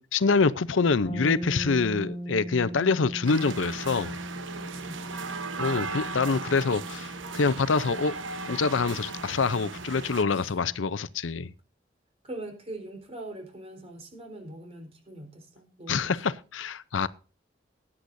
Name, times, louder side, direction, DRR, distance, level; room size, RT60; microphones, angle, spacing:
voice 1, 0.0-4.2 5.6-8.1 8.5-11.5 15.9-17.1, left 4 dB, 90° left, 0.6 m, -26 dB
sound 1, 1.0-10.8, equal, 30° left, 5.9 m, -40 dB
sound 2, 3.2-10.2, right 3 dB, 80° right, 1.2 m, -37 dB
voice 2, 4.5-5.8 10.3-10.5 12.2-16.4, right 2 dB, 30° right, 4.0 m, -43 dB
19.5 x 9.9 x 2.6 m
head